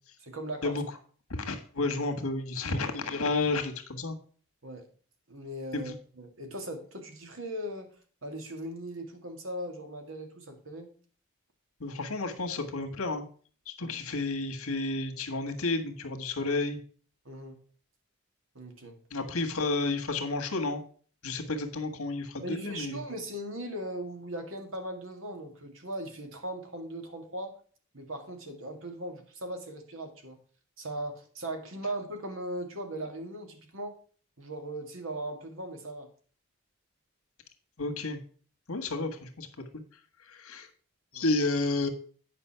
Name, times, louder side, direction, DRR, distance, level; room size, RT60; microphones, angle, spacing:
voice 1, 0.2-0.8 4.6-4.9 5.3-10.9 13.8-13.9 17.3-17.6 18.5-19.0 22.4-27.6 27.9-30.4 30.8-34.0 34.4-36.1 41.1-41.3, right 1 dB, 70° right, 5 dB, 2.0 m, -39 dB
voice 2, 1.3-4.2 5.7-5.9 11.8-13.3 13.7-16.8 19.1-20.8 21.2-23.0 37.8-38.2 38.7-39.5 39.7-39.8 40.2-40.7 41.1-41.9, left 3 dB, 85° left, 5 dB, 1.6 m, -31 dB
9.4 x 5.4 x 5.7 m, 0.43 s
head